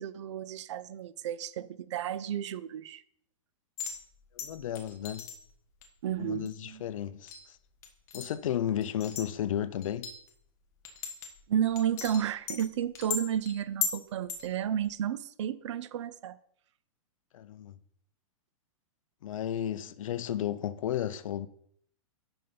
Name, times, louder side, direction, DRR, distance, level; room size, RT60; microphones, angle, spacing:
voice 1, 0.0-3.0 6.0-6.8 11.5-16.4, right 9 dB, 55° right, 0.4 m, -32 dB
sound 1, 3.8-4.0 4.4-5.4 5.8-5.9 6.5-6.6 7.3-7.5 7.8-8.3 8.8-9.3 9.8-10.3 10.8-11.4 11.8-12.7 13.0-14.0 14.3-14.5 14.8-14.9, left 7 dB, 15° left, 0.7 m, -37 dB
voice 2, 4.3-5.3 6.2-7.6 8.1-10.1 17.3-17.8 19.2-21.5, left 10 dB, 70° left, 0.5 m, -33 dB
5.4 x 5.4 x 5.6 m
supercardioid pair, 175°, 18 cm